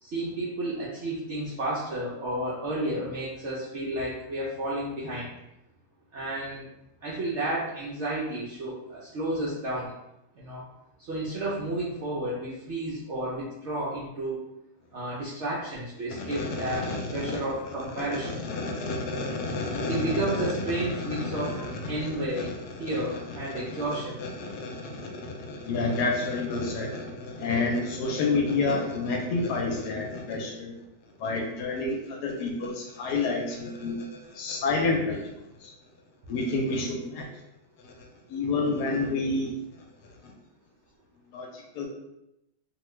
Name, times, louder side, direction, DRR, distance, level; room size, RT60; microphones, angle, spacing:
voice 1, 0.0-5.3 6.1-6.7 7.0-9.9 10.4-10.6 11.0-14.4 14.9-18.4 19.9-21.5 21.9-22.5 22.8-24.2, right 1 dB, 65° right, -6 dB, 0.7 m, -31 dB
voice 2, 16.1-17.4 17.9-30.7 31.2-35.3 35.6-35.7 36.3-37.3 37.8-39.5 40.2-40.3 41.3-41.9, left 3 dB, 75° left, 0 dB, 1.1 m, -30 dB
2.9 x 2.2 x 3.1 m, 0.86 s
omnidirectional pair, 1.8 m